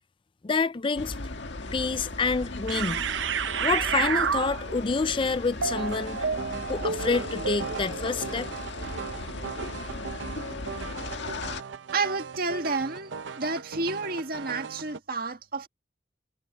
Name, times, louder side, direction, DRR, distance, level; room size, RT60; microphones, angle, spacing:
voice 1, 0.4-1.2 1.7-3.0 3.6-6.2 6.7-8.5, left 4 dB, 30° left, 0.4 m, -27 dB
sound 1, 1.0-11.6, left 2 dB, 75° left, 1.7 m, -37 dB
sound 2, 1.9-2.0 2.7-4.9 5.6-15.0, right 6 dB, 85° right, 0.6 m, -33 dB
voice 2, 11.9-15.7, right 3 dB, 55° right, 1.8 m, -30 dB
head